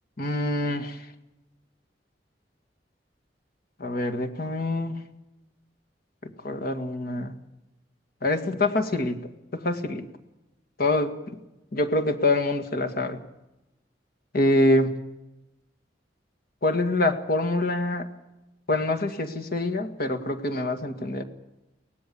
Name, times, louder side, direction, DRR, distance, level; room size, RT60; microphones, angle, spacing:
voice 1, 0.2-1.1 3.8-5.0 6.2-7.3 8.2-10.1 10.8-11.1 11.7-13.2 14.3-14.9 16.6-18.1 18.7-21.2, left 2 dB, 55° left, 5 dB, 1.9 m, -25 dB
23.5 x 18.5 x 7.0 m, 0.96 s
head